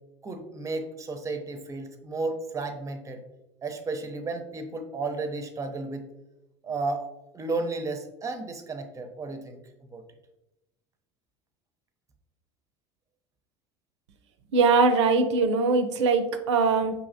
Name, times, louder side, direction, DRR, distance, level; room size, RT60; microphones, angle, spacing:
voice 1, 0.2-3.2 3.6-6.1 6.6-7.1 7.3-9.6 9.9-10.0, right 3 dB, 20° right, 6 dB, 0.6 m, -33 dB
voice 2, 14.5-16.9, right 4 dB, 85° right, 8 dB, 0.5 m, -21 dB
4.8 x 2.8 x 2.6 m, 0.94 s
hypercardioid pair, 85°, 15 cm